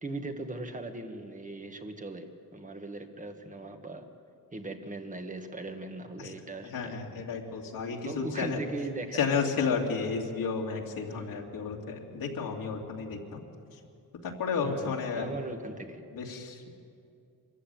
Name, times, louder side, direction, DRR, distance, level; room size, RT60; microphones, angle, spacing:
voice 1, 0.0-4.1 4.5-7.0 7.8-9.3 11.1-11.4 11.9-12.2 14.6-16.0, right 2 dB, 20° right, 6 dB, 1.7 m, -39 dB
voice 2, 6.7-8.6 9.1-13.4 14.2-15.3 16.1-16.7, left 5 dB, 85° left, -1 dB, 2.7 m, -32 dB
24.5 x 14.5 x 9.4 m, 2.4 s
cardioid pair, 125°, 34 cm